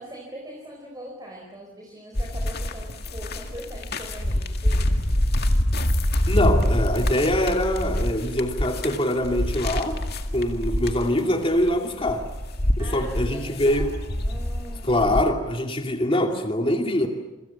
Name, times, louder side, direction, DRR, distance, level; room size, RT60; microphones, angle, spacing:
voice 1, 0.0-5.0 12.8-14.9, right 1 dB, 20° right, 0 dB, 4.3 m, -42 dB
sound 1, 2.1-15.2, left 1 dB, 50° left, 2.2 m, -25 dB
voice 2, 6.3-10.0 10.3-12.3 12.8-13.9 14.8-17.1, left 1 dB, 25° left, 4 dB, 2.5 m, -23 dB
28.0 x 25.0 x 7.2 m, 1.1 s
head